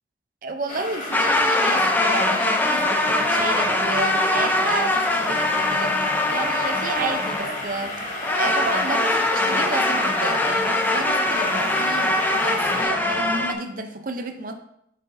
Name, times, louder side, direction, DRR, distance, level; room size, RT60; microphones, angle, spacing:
voice 1, 0.4-14.5, right 3 dB, 50° right, 7 dB, 0.6 m, -31 dB
sound 1, 0.7-12.8, left 2 dB, 45° left, 1.2 m, -33 dB
sound 2, 1.1-7.6 8.2-13.5, left 2 dB, 10° left, 0.5 m, -22 dB
7.6 x 6.4 x 2.7 m, 0.75 s
head